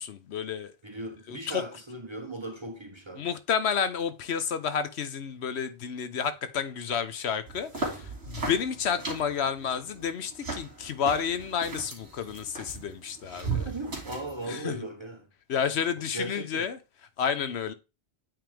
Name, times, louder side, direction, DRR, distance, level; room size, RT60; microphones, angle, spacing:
voice 1, 0.0-0.7 1.3-1.6 3.2-13.6 14.5-14.7 15.5-16.8 17.2-17.7, left 7 dB, 70° left, 0.9 m, -30 dB
voice 2, 0.8-3.3 7.9-8.1 13.5-15.3 16.0-16.7, right 1 dB, 30° right, 0.7 m, -38 dB
sound 1, 7.5-14.4, right 4 dB, 60° right, 2.3 m, -37 dB
8.9 x 3.5 x 3.4 m
omnidirectional pair, 1.2 m